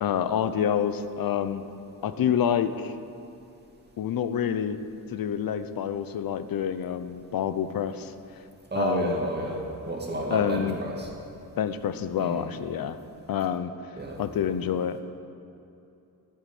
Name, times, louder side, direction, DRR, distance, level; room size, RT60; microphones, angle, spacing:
voice 1, 0.0-1.6 2.0-2.9 4.0-4.8 5.1-8.1 8.8-9.2 10.3-10.8 11.6-13.0 13.3-13.7 14.2-15.0, left 9 dB, 60° left, 11 dB, 0.7 m, -27 dB
voice 2, 8.7-9.6 9.9-11.1 12.2-12.5 14.0-14.2, right 1 dB, 25° right, -2 dB, 2.4 m, -30 dB
13.5 x 8.2 x 6.0 m, 2.8 s
cardioid pair, 110°, 39 cm